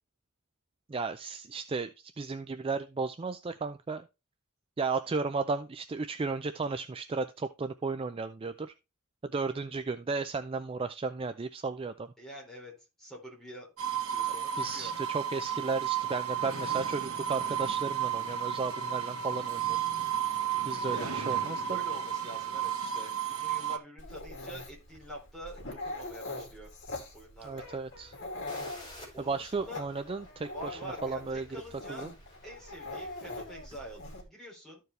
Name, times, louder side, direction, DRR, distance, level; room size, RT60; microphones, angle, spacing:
voice 1, 0.9-1.9 2.2-4.1 4.8-8.7 9.2-12.1 14.6-19.8 20.6-21.8 27.4-28.1 29.2-31.5 31.9-32.1, right 4 dB, 25° right, 9 dB, 0.4 m, -34 dB
voice 2, 12.2-12.7 13.0-14.9 20.9-21.1 21.7-26.7 27.1-27.7 29.1-29.8 30.5-32.1 32.4-34.8, equal, ahead, -3 dB, 3.5 m, -46 dB
sound 1, 13.8-23.8, right 9 dB, 70° right, 1.5 m, -32 dB
Dog, 24.0-34.2, left 2 dB, 55° left, 2.5 m, -43 dB
sound 2, 28.5-34.1, left 1 dB, 25° left, 4.2 m, -55 dB
13.5 x 4.7 x 3.2 m, 0.27 s
head